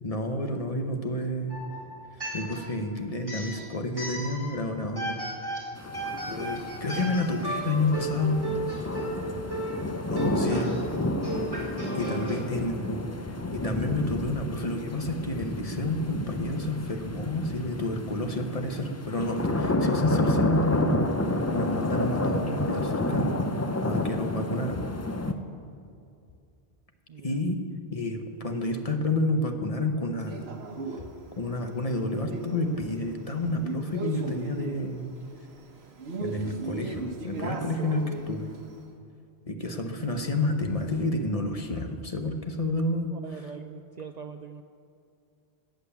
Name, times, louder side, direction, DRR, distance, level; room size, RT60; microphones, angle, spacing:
voice 1, 0.0-1.5 2.3-5.2 6.3-8.4 10.1-10.7 11.9-13.0 13.5-21.0 21.5-23.3 23.8-24.8 27.2-27.6 27.9-30.5 31.4-35.1 36.2-38.5 39.5-43.1, left 2 dB, 35° left, 5 dB, 1.0 m, -29 dB
sound 1, 1.5-2.8 3.2-4.6 5.0-12.4, right 1 dB, 20° right, 3.2 m, -35 dB
sound 2, 5.8-25.3, left 1 dB, 20° left, 0.5 m, -30 dB
voice 2, 10.2-10.6 27.1-27.5 43.1-44.6, right 7 dB, 55° right, 7 dB, 0.5 m, -42 dB
Male speech man speaking, 30.3-38.8, right 3 dB, 80° right, 1.4 m, -39 dB
17.0 x 7.9 x 7.0 m, 2.4 s
omnidirectional pair, 1.1 m